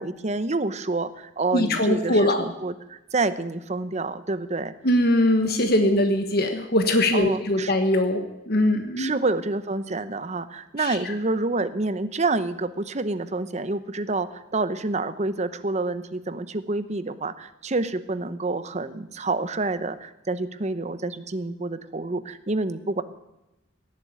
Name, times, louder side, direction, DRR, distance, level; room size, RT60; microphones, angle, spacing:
voice 1, 0.0-4.7 7.1-7.7 9.0-23.0, right 3 dB, 40° right, 12 dB, 0.9 m, -28 dB
voice 2, 1.5-2.4 4.8-8.2 8.5-9.1 10.8-10.9, left 1 dB, 60° left, 5 dB, 1.4 m, -21 dB
17.5 x 7.6 x 9.5 m, 0.93 s
head